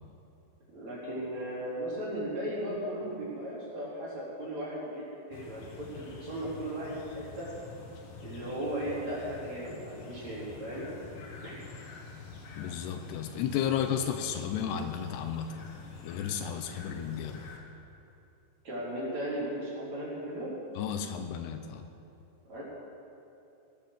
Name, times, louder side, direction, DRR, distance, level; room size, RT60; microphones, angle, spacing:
voice 1, 0.7-7.5 8.2-10.8 11.4-11.6 18.6-20.5 22.5-22.6, right 1 dB, 40° right, -7 dB, 4.5 m, -36 dB
sound 1, 5.3-17.6, left 4 dB, 60° left, 2.8 m, -47 dB
voice 2, 12.6-15.6 16.0-17.4 20.8-21.8, left 8 dB, 80° left, 7 dB, 2.8 m, -33 dB
18.0 x 10.5 x 6.7 m, 2.9 s
omnidirectional pair, 4.9 m